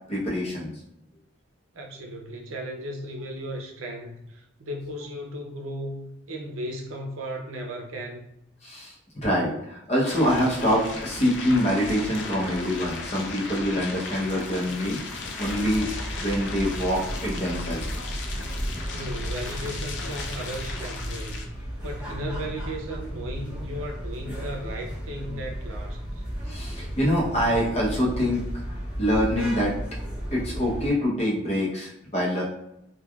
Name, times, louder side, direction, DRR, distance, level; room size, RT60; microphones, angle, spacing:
voice 1, 0.1-0.7 8.6-8.9 9.2-15.9 16.2-17.8 26.5-28.4 29.0-29.7 30.3-32.4, equal, 30° left, -4 dB, 0.8 m, -25 dB
voice 2, 1.7-8.3 18.9-21.4 21.8-26.2, equal, 85° right, 1 dB, 0.6 m, -36 dB
sound 1, 10.1-21.4, left 3 dB, 55° left, 0.4 m, -36 dB
sound 2, 15.4-30.9, equal, 5° right, 0.7 m, -34 dB
3.2 x 2.3 x 2.3 m, 0.81 s
head